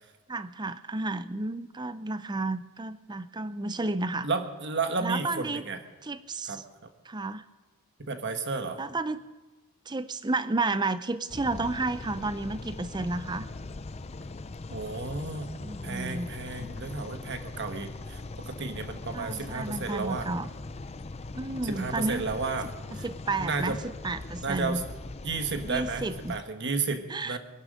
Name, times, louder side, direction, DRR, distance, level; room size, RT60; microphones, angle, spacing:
voice 1, 0.3-4.3 5.0-5.6 6.0-6.6 7.0-7.4 8.8-9.2 9.9-13.5 15.6-17.1 19.1-20.5 21.3-22.3 22.6-24.8 25.6-26.4 27.1-27.4, right 2 dB, 20° right, 13 dB, 0.5 m, -32 dB
voice 2, 4.2-5.8 6.5-6.6 8.1-8.8 14.7-15.5 15.8-20.3 21.6-22.7 23.0-23.1 23.4-23.8 24.4-24.8 25.2-27.4, right 4 dB, 55° right, 7 dB, 1.3 m, -32 dB
sound 1, 11.3-26.4, left 2 dB, 30° left, 0.5 m, -40 dB
21.5 x 12.0 x 5.0 m, 1.2 s
head